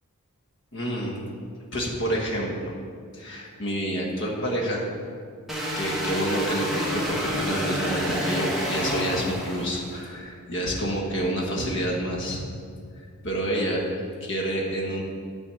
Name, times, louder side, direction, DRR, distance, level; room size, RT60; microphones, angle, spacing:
voice 1, 0.7-1.3 1.7-2.7 3.1-4.8 5.7-12.4 13.2-13.9 14.2-15.0, equal, 55° left, -1 dB, 1.4 m, -28 dB
sound 1, 5.5-10.0, equal, ahead, 1.3 m, -29 dB
10.0 x 4.2 x 7.6 m, 2.2 s
head